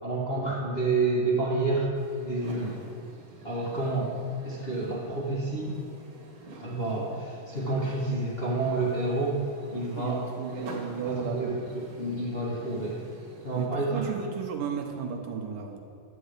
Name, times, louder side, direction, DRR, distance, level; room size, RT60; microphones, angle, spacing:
voice 1, 0.0-2.7 3.4-4.1 4.4-5.7 6.6-9.5 9.7-10.2 11.0-13.0 13.4-14.1, right 2 dB, 30° left, -7 dB, 1.1 m, -29 dB
sound 1, 1.9-13.7, right 2 dB, 50° right, 2.2 m, -47 dB
voice 2, 10.0-11.6 13.6-15.8, right 6 dB, 70° right, 2 dB, 2.2 m, -34 dB
11.5 x 5.3 x 8.1 m, 2.6 s
omnidirectional pair, 4.7 m